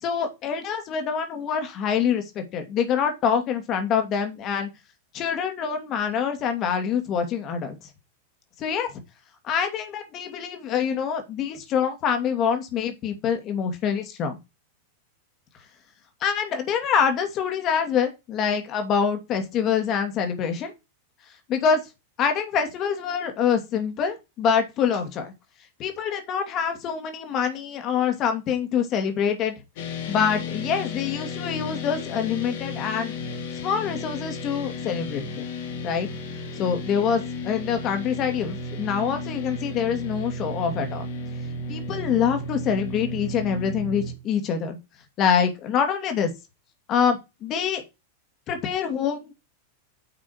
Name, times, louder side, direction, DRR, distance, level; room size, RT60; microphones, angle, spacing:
voice 1, 0.0-4.7 5.1-7.8 8.6-9.0 9.4-14.4 16.2-20.7 21.5-21.8 22.2-25.3 25.8-29.5 30.1-33.1 33.5-35.5 35.8-36.1 36.6-41.1 41.7-44.8 45.2-46.3 46.9-47.8 48.5-49.3, left 7 dB, 35° left, 6 dB, 2.7 m, -25 dB
sound 1, 29.8-44.1, left 2 dB, 55° left, 3.0 m, -34 dB
8.9 x 6.1 x 4.7 m, 0.24 s
figure-of-eight pair, 90°, 0 cm